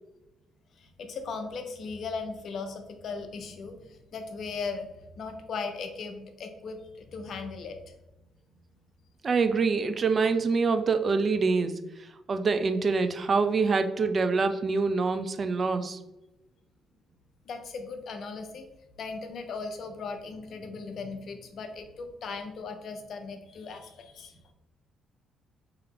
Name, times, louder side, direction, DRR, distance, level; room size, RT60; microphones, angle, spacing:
voice 1, 0.8-7.8 17.5-18.7 19.0-24.4, left 4 dB, 60° left, 6 dB, 0.6 m, -38 dB
voice 2, 9.2-11.8 12.3-16.0, right 4 dB, 45° right, 9 dB, 0.4 m, -25 dB
3.4 x 2.8 x 3.7 m, 0.95 s
supercardioid pair, 75°, 0 cm